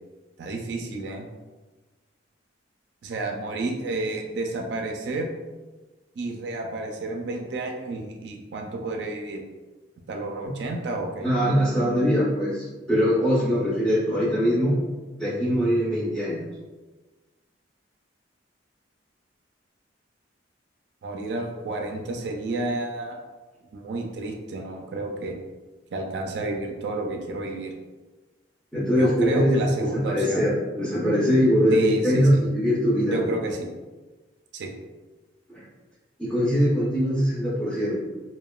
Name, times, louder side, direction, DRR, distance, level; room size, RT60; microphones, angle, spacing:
voice 1, 0.4-1.3 3.0-5.3 6.2-9.4 10.1-11.3 21.0-23.2 23.7-25.4 25.9-27.7 29.0-30.5 31.7-32.4 33.1-33.7 34.5-34.7, right 2 dB, 60° right, 2 dB, 0.3 m, -30 dB
voice 2, 11.2-14.8 15.2-16.4 28.7-29.6 29.9-33.2 35.5-35.6 36.2-38.0, equal, 5° left, -9 dB, 0.4 m, -22 dB
2.8 x 2.1 x 2.2 m, 1.2 s
head